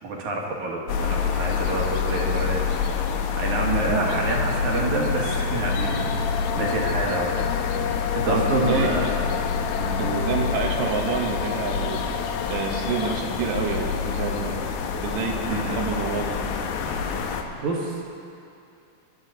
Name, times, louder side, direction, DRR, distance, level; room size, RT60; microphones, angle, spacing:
voice 1, 0.0-2.8 3.4-7.3 8.1-9.3 9.8-10.2 15.4-15.8 17.6-18.0, right 2 dB, 55° right, -1 dB, 2.5 m, -28 dB
sound 1, 0.9-17.4, left 6 dB, 75° left, 2.6 m, -27 dB
sound 2, 5.7-13.2, left 9 dB, 90° left, 2.1 m, -32 dB
voice 2, 8.3-9.0 10.0-12.0 12.5-14.6 15.0-16.4, right 5 dB, 90° right, 1 dB, 3.5 m, -28 dB
23.5 x 11.0 x 4.0 m, 2.6 s
omnidirectional pair, 4.8 m